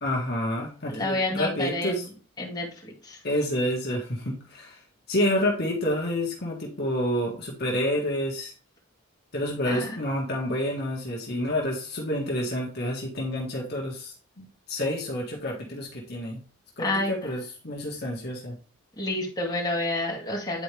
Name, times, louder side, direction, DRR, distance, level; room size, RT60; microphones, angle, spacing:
voice 1, 0.0-2.0 3.2-4.8 5.1-8.5 9.3-16.4 16.8-18.6, left 1 dB, 50° left, -2 dB, 1.6 m, -29 dB
voice 2, 0.9-2.1 2.4-3.2 9.7-10.0 16.8-17.3 19.0-20.6, left 2 dB, 20° left, -3 dB, 2.1 m, -29 dB
9.9 x 4.3 x 3.4 m, 0.39 s
head